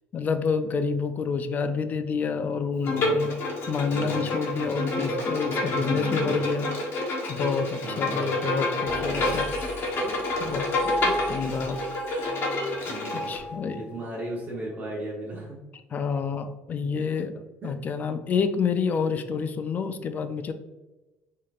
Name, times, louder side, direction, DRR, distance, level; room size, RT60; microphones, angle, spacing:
voice 1, 0.1-3.3 3.7-6.7 7.3-9.5 9.9-10.0 10.4-10.7 11.0-11.9 13.1-13.8 15.9-17.3 17.6-20.5, left 5 dB, 35° left, 9 dB, 0.4 m, -28 dB
Bowed string instrument, 2.8-13.4, left 2 dB, 50° left, 1.1 m, -28 dB
voice 2, 2.8-3.2 3.8-4.2 5.7-6.4 7.8-8.4 9.1-9.6 10.0-10.4 10.8-10.9 11.3-11.7 12.9-13.3 13.7-15.6 16.9-17.1 17.6-17.7, right 2 dB, 40° right, -5 dB, 1.0 m, -38 dB
sound 1, 8.8-14.2, equal, 20° left, 1.2 m, -35 dB
4.6 x 2.9 x 2.4 m, 1.1 s
cardioid pair, 115°, 5 cm